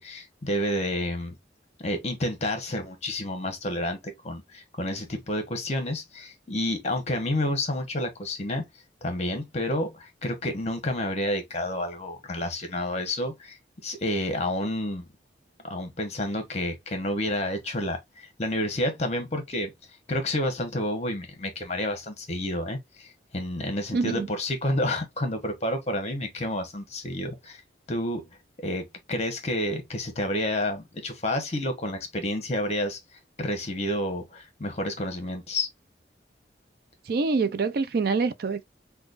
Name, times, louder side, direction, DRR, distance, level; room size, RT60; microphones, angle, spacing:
voice 1, 0.0-1.3 1.8-4.0 4.2-8.6 9.0-13.6 13.8-15.1 15.6-19.7 20.1-27.6 27.9-28.2 28.6-33.0 33.4-35.7, left 1 dB, 35° left, 1.0 m, -29 dB
voice 2, 23.9-24.3 37.1-38.6, right 4 dB, 55° right, 0.4 m, -25 dB
5.0 x 2.3 x 2.5 m
head